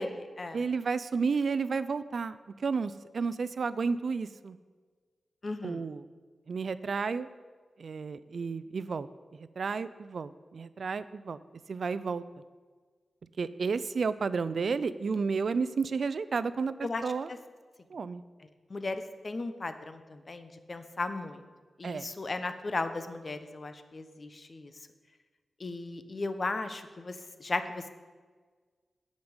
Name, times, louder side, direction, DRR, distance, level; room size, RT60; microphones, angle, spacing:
voice 1, 0.0-0.6 5.4-5.9 16.8-17.0 17.3-17.4 18.7-21.4 21.8-24.7 25.6-27.9, left 3 dB, 40° left, 9 dB, 0.8 m, -36 dB
voice 2, 0.5-2.4 2.6-4.6 5.6-6.0 6.5-7.3 7.8-9.1 9.4-11.4 11.7-12.2 13.4-17.3 17.9-18.2 21.8-22.1, right 5 dB, 60° right, 15 dB, 0.4 m, -32 dB
10.5 x 5.2 x 8.0 m, 1.5 s
wide cardioid pair, 95°, 0 cm